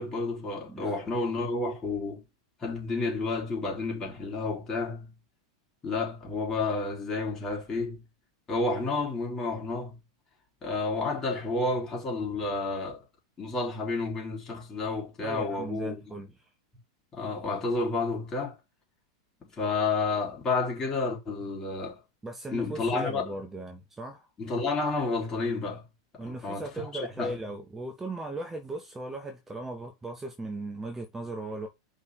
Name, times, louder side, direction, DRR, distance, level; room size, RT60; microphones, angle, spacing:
voice 1, 0.0-2.2 2.6-5.1 5.8-8.0 8.5-10.0 10.6-13.0 13.4-16.0 17.1-18.6 19.5-22.0 22.5-23.3 24.4-25.8 26.1-26.7 26.9-27.4, left 3 dB, 25° left, 3.7 m, -30 dB
voice 2, 15.2-16.5 22.2-24.3 26.2-31.7, right 2 dB, 15° right, 1.2 m, -38 dB
5.4 x 4.4 x 6.3 m
figure-of-eight pair, 90°, 2 cm